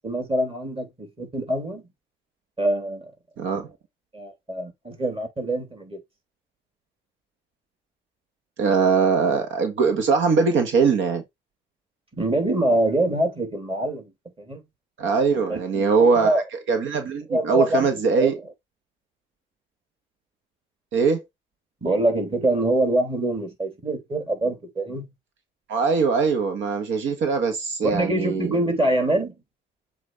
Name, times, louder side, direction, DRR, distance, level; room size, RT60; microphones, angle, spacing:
voice 1, 0.0-1.8 2.6-3.1 4.1-6.0 12.1-14.1 14.4-14.6 15.5-16.4 17.3-17.9 18.2-18.4 21.8-25.1 27.8-29.3, right 1 dB, 30° right, 3.3 m, -24 dB
voice 2, 3.4-3.7 8.6-11.2 15.0-16.4 16.7-18.3 20.9-21.2 25.7-28.6, right 5 dB, 80° right, 1.4 m, -21 dB
7.5 x 2.8 x 4.7 m
cardioid pair, 90°, 20 cm